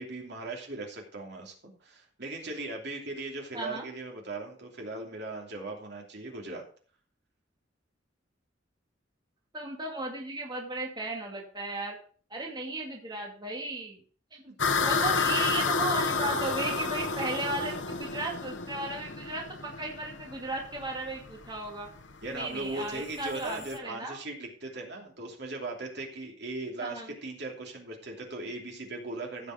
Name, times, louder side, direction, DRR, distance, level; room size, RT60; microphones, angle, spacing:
voice 1, 0.0-1.5 1.8-6.6 14.7-14.8 22.2-29.5, right 2 dB, 65° right, 1 dB, 2.8 m, -38 dB
voice 2, 3.5-3.9 9.5-12.0 12.3-14.0 14.3-14.4 14.8-21.9 22.3-24.2 26.8-27.1, right 2 dB, 25° right, -1 dB, 2.3 m, -35 dB
sound 1, 14.6-23.8, left 4 dB, 75° left, 1.0 m, -31 dB
15.5 x 5.5 x 5.0 m, 0.43 s
head